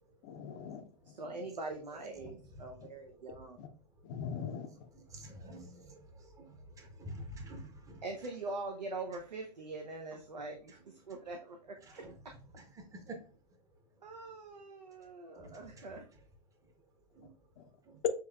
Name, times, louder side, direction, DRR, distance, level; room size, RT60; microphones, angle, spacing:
voice 1, 0.2-1.2 3.6-3.7 4.0-4.9 17.6-17.7 18.0-18.1, left 7 dB, 35° left, 0.5 m, -38 dB
voice 2, 1.1-3.6 8.0-12.0 14.0-16.1, right 3 dB, 80° right, 0.7 m, -43 dB
voice 3, 2.2-2.6 4.9-8.0 11.8-12.1 12.6-12.7 12.9-13.2 15.3-15.9 17.1-17.3 17.9-18.0, right 1 dB, 15° right, 0.9 m, -48 dB
6.9 x 3.0 x 2.3 m
figure-of-eight pair, 110°, 21 cm